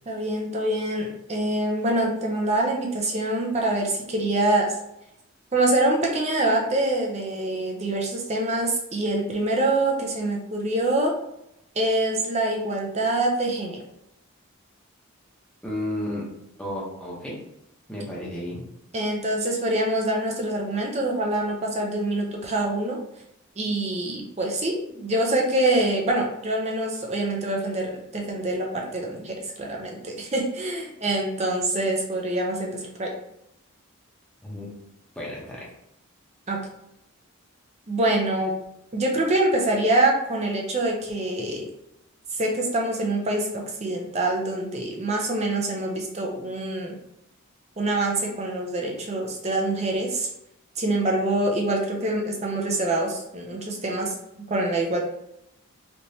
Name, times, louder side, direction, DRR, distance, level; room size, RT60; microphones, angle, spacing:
voice 1, 0.1-4.8 5.5-11.1 11.7-13.8 18.9-23.0 23.6-33.1 36.5-36.6 37.9-38.5 38.9-41.6 42.3-47.0 47.8-50.3 50.8-54.1 54.5-55.0, right 2 dB, 30° right, 0 dB, 0.5 m, -25 dB
voice 2, 15.6-16.2 16.6-17.4 17.9-18.6 34.4-34.7 35.1-35.7, left 1 dB, 5° left, -5 dB, 0.7 m, -32 dB
3.2 x 2.9 x 2.7 m, 0.82 s
head